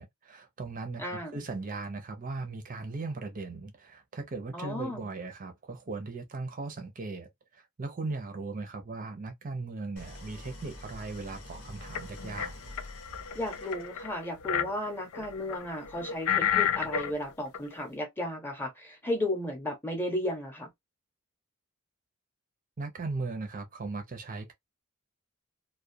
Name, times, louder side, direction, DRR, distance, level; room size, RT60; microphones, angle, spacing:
voice 1, 0.0-12.5 22.8-24.5, right 3 dB, 40° right, 0.5 m, -38 dB
voice 2, 1.0-1.4 4.5-5.1 13.3-20.7, left 1 dB, 10° left, 0.8 m, -34 dB
Idling, 10.0-14.2, left 1 dB, 65° left, 0.8 m, -46 dB
sound 1, 11.8-12.5 12.8-17.2 17.5-17.7, left 9 dB, 85° left, 0.4 m, -31 dB
2.3 x 2.2 x 2.6 m
head